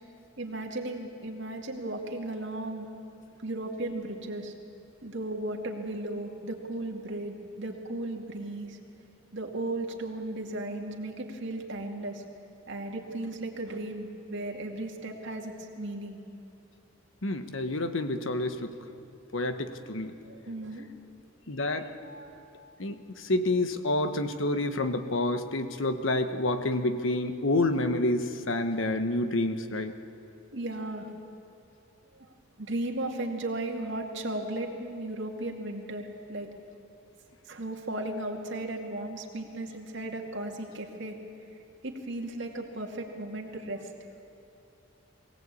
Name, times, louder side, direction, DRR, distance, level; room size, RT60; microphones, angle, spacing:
voice 1, 0.4-2.9 3.4-4.5 5.0-8.8 9.3-12.2 12.7-16.2 20.2-20.9 21.6-22.7 30.5-31.1 32.1-32.3 32.6-36.5 37.4-41.2 41.5-44.1, right 2 dB, 65° right, 1 dB, 2.4 m, -36 dB
voice 2, 17.2-18.7 19.3-20.1 21.5-21.9 22.8-29.9, left 2 dB, 70° left, 9 dB, 1.3 m, -28 dB
22.0 x 17.0 x 8.6 m, 2.7 s
head